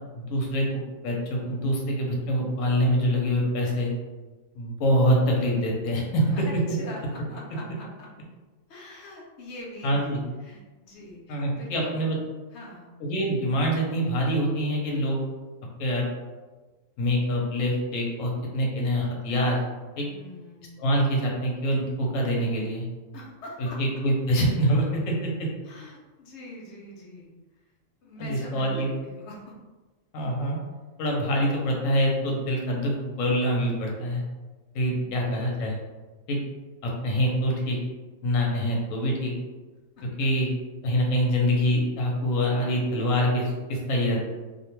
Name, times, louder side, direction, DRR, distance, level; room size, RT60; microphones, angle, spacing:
voice 1, 0.1-0.7 1.0-3.9 4.6-6.2 9.8-10.2 11.3-12.2 13.0-15.2 15.8-16.0 17.0-19.6 20.0-20.1 20.8-22.9 23.6-25.3 28.2-28.9 30.1-30.6 31.0-34.2 34.7-35.7 36.3-36.4 36.8-37.8 38.2-39.3 40.2-40.5 40.8-44.3, equal, 80° left, -1 dB, 1.0 m, -25 dB
voice 2, 6.3-8.1 8.7-12.0 12.5-12.9 20.0-20.9 23.1-23.8 25.6-27.3 28.0-29.5 35.0-35.3 40.0-40.3, left 1 dB, 65° left, -2 dB, 0.8 m, -43 dB
2.5 x 2.1 x 2.9 m, 1.3 s
omnidirectional pair, 1.4 m